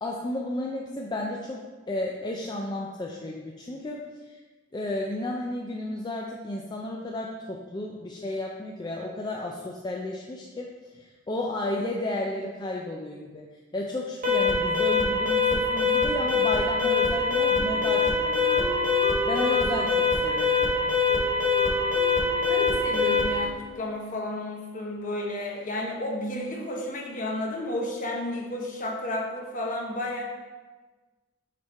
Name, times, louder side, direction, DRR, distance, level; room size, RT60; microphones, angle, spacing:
voice 1, 0.0-4.4 4.7-13.4 13.7-20.9, left 2 dB, 20° left, -1 dB, 0.4 m, -33 dB
Alarm, 14.2-23.4, left 4 dB, 45° right, 1.4 m, -23 dB
Wind instrument woodwind instrument, 17.2-24.1, left 1 dB, 10° right, 0.8 m, -38 dB
voice 2, 22.5-30.2, left 1 dB, 45° left, -1 dB, 1.0 m, -32 dB
6.5 x 3.6 x 4.1 m, 1.3 s
head